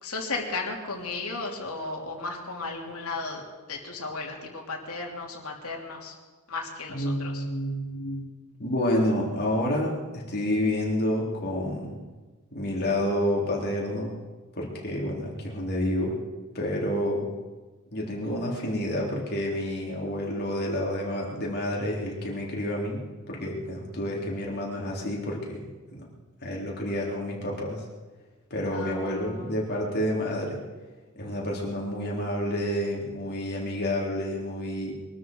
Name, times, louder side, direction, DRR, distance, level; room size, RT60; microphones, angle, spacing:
voice 1, 0.0-3.4 3.7-6.2 6.5-7.4 28.6-29.5, left 3 dB, 75° left, 0 dB, 3.1 m, -35 dB
voice 2, 6.9-8.3 8.6-12.0 12.5-14.2 14.6-16.2 16.5-17.3 17.9-23.0 23.3-26.1 26.4-27.8 28.5-30.6 31.2-34.9, left 1 dB, 50° left, -3 dB, 3.9 m, -29 dB
23.5 x 13.0 x 4.7 m, 1.3 s
head